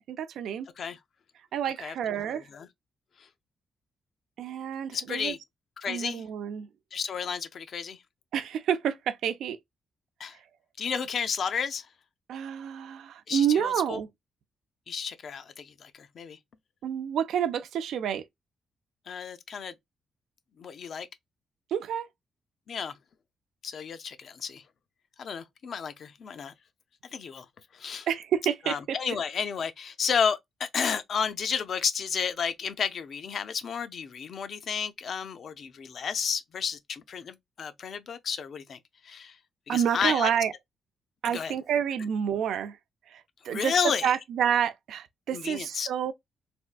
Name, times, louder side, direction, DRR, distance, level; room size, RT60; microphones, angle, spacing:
voice 1, 0.1-0.7 1.5-2.5 4.4-5.3 5.9-6.7 8.3-9.6 12.3-14.1 16.8-18.2 21.7-22.1 28.1-29.0 39.7-40.5 41.2-42.8 43.1-43.7 44.0-46.1, right 9 dB, 80° right, 0.4 m, -29 dB
voice 2, 2.2-2.7 3.2-3.3 4.9-5.4 5.8-6.2 6.9-8.0 10.2-10.4 10.8-11.9 13.3-14.0 14.9-16.4 19.1-19.8 20.6-21.1 22.7-23.0 23.6-24.6 25.2-26.5 27.1-27.5 27.7-28.1 28.7-39.4 39.7-40.3 41.2-41.5 43.5-44.1 45.3-45.9, left 6 dB, 50° left, 0.4 m, -32 dB
3.4 x 2.3 x 2.4 m
cardioid pair, 150°, 0 cm